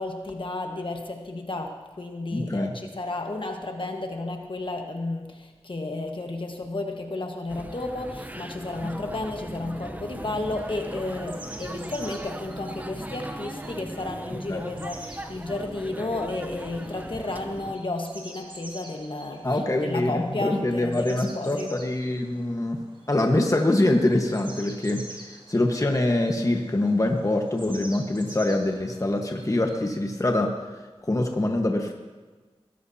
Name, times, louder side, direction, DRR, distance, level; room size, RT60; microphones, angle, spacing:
voice 1, 0.0-21.8, left 2 dB, 50° left, 3 dB, 1.4 m, -32 dB
voice 2, 2.3-2.7 14.5-14.6 19.4-22.8 23.1-25.0 25.5-30.5 31.0-31.9, left 1 dB, 30° left, 2 dB, 1.3 m, -24 dB
sound 1, 7.5-17.7, right 1 dB, 15° right, 0.8 m, -38 dB
sound 2, 10.2-29.9, right 2 dB, 50° right, 2.3 m, -48 dB
21.0 x 14.0 x 2.8 m, 1.3 s
wide cardioid pair, 65°, 11 cm